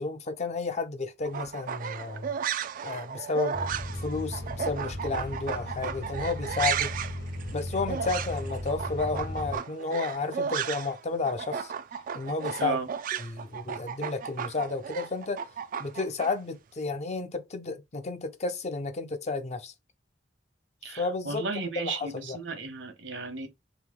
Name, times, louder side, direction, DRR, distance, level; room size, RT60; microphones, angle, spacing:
voice 1, 0.0-2.4 2.8-3.6 4.0-6.9 7.5-11.7 12.1-12.8 13.2-15.4 15.8-19.7 20.9-21.4 21.8-22.4, left 3 dB, 35° left, 0.5 m, -32 dB
sound 1, 1.2-11.0 11.2-16.3, right 8 dB, 50° right, 0.3 m, -34 dB
sound 2, 3.5-9.6, equal, 60° left, 1.0 m, -36 dB
voice 2, 20.8-23.5, right 4 dB, 70° right, 1.1 m, -34 dB
3.4 x 3.1 x 3.6 m
head